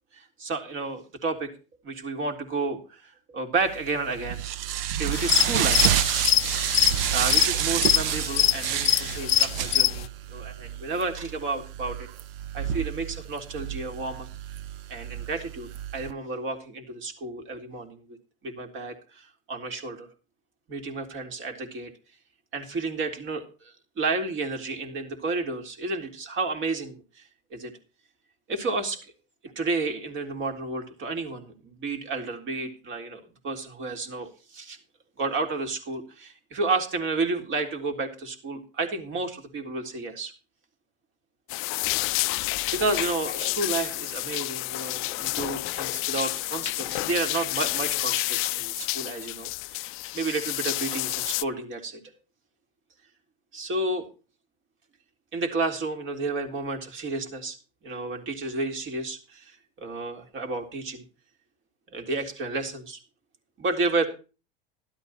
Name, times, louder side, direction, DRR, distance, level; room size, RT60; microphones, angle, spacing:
voice 1, 0.1-1.5 1.8-4.5 5.0-5.9 7.1-12.1 12.5-14.3 14.9-18.2 18.4-20.1 20.7-21.9 22.5-23.5 24.0-27.0 27.5-27.7 28.5-29.0 29.6-34.8 35.2-40.3 42.1-42.4 42.7-52.0 53.5-54.1 55.3-57.6 57.8-59.5 59.8-61.0 61.9-63.0 63.6-64.1, right 3 dB, 45° right, 5 dB, 3.7 m, -31 dB
sound 1, 3.7-16.1, right 11 dB, 75° right, 1.0 m, -29 dB
sound 2, 5.1-10.1, left 14 dB, 90° left, 0.6 m, -24 dB
sound 3, 41.5-51.4, left 21 dB, 45° left, 0.5 m, -30 dB
12.5 x 12.0 x 4.3 m, 0.34 s
hypercardioid pair, 100°, 29 cm